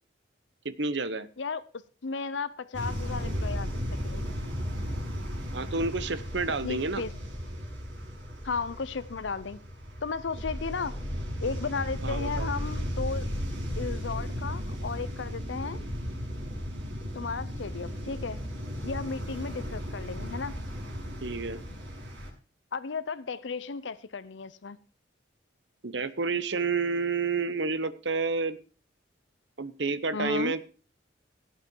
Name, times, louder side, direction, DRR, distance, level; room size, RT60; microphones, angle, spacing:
voice 1, 0.6-1.3 5.5-7.0 12.0-12.5 21.2-21.6 25.8-28.6 29.6-30.7, right 4 dB, 70° right, 1.0 m, -30 dB
voice 2, 2.0-3.7 4.0-4.3 6.6-7.1 8.4-9.6 10.0-11.0 11.4-13.3 13.8-15.8 17.1-18.4 18.8-20.6 22.7-24.8 30.1-30.5, left 4 dB, 80° left, 0.6 m, -34 dB
sound 1, 2.7-22.3, equal, 90° right, 6.1 m, -35 dB
17.0 x 8.3 x 4.6 m
head